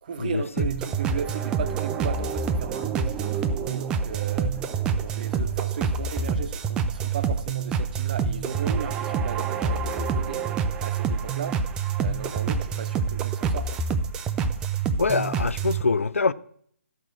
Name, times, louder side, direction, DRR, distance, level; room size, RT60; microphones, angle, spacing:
voice 1, 0.0-11.7 11.9-13.8, right 7 dB, 35° right, 0.8 m, -36 dB
sound 1, 0.6-15.8, right 5 dB, 10° right, 0.3 m, -27 dB
voice 2, 15.0-16.3, left 4 dB, 65° left, 0.4 m, -24 dB
12.5 x 5.7 x 6.1 m
figure-of-eight pair, 140°, 8 cm